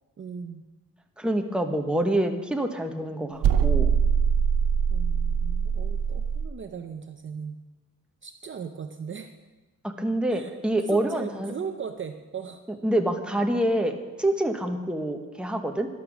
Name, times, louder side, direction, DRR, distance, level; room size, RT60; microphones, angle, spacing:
voice 1, 0.2-0.6 4.9-7.6 8.2-9.3 10.3-12.6, right 6 dB, 35° right, 6 dB, 0.7 m, -38 dB
voice 2, 1.2-4.0 9.8-11.5 12.8-15.9, right 1 dB, 5° right, 4 dB, 1.1 m, -26 dB
sound 1, 3.4-6.5, right 7 dB, 80° right, 0.7 m, -23 dB
13.5 x 10.5 x 6.1 m, 1.2 s
wide cardioid pair, 145°, 33 cm